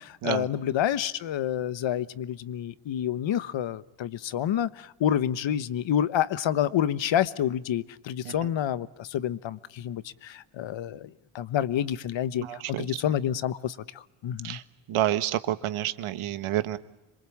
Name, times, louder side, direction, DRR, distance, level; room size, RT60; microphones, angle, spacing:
voice 1, 0.0-14.6, left 10 dB, 65° left, 16 dB, 1.2 m, -28 dB
voice 2, 12.4-13.0 14.4-14.6 14.9-16.8, right 13 dB, 85° right, 12 dB, 1.6 m, -29 dB
26.5 x 23.5 x 8.6 m, 0.93 s
cardioid pair, 110°, 49 cm